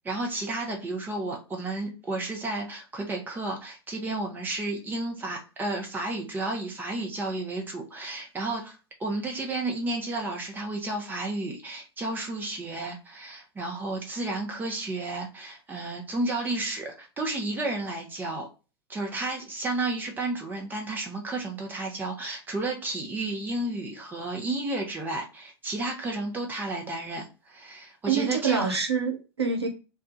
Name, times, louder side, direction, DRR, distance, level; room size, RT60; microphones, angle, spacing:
voice 1, 0.0-18.5 18.9-28.8, right 2 dB, 15° right, 0.9 m, -32 dB
voice 2, 28.1-29.7, right 5 dB, 85° right, 0.7 m, -26 dB
2.6 x 2.3 x 3.8 m
figure-of-eight pair, 90°, 13 cm